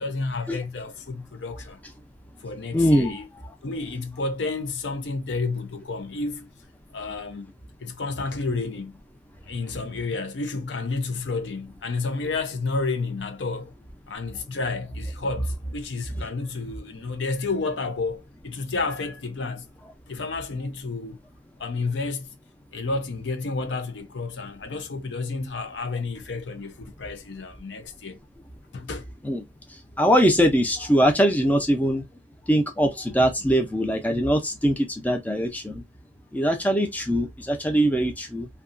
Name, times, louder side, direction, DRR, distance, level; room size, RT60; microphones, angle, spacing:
voice 1, 0.0-1.8 2.4-3.3 3.6-6.5 6.9-7.5 7.8-9.0 9.5-13.7 14.1-19.6 20.1-21.2 21.6-22.3 22.7-28.2 28.7-29.0, left 3 dB, 80° left, 0.6 m, -30 dB
voice 2, 2.7-3.2 29.2-29.4 29.7-32.0 32.5-35.8 36.3-38.5, equal, 10° left, 0.5 m, -22 dB
2.7 x 2.3 x 2.5 m
head